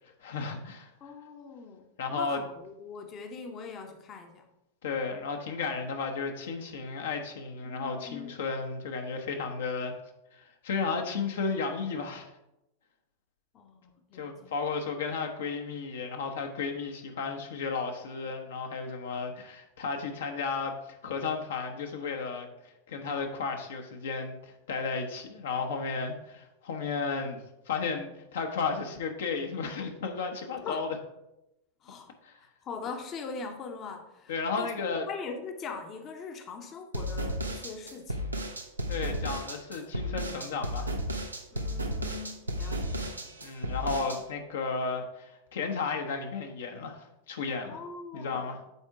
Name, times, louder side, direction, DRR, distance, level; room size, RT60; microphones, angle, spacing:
voice 1, 0.2-0.9 2.0-2.4 4.8-9.9 10.3-12.3 14.1-22.5 22.9-27.4 27.7-30.9 32.2-32.4 34.3-35.0 38.9-40.9 43.4-47.8 48.1-48.6, left 4 dB, 60° left, 3 dB, 0.9 m, -33 dB
voice 2, 1.0-4.5 7.6-8.4 13.5-14.5 30.6-30.9 31.8-32.1 32.4-38.3 41.5-43.3 47.7-48.6, left 4 dB, 30° left, 5 dB, 0.8 m, -42 dB
sound 1, 36.9-44.2, equal, 80° right, 0.8 m, -33 dB
8.3 x 4.5 x 4.6 m, 0.89 s
figure-of-eight pair, 90°, 0 cm